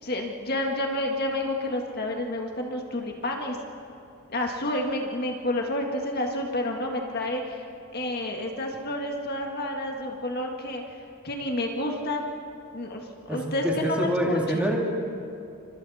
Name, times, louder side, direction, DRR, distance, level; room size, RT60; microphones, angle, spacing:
voice 1, 0.0-3.6 4.3-7.7 7.9-10.8 11.2-12.3 12.7-14.7, left 1 dB, 45° left, 1 dB, 1.9 m, -30 dB
voice 2, 13.3-14.8, equal, 5° right, -1 dB, 2.4 m, -26 dB
28.5 x 25.0 x 4.3 m, 2.6 s
head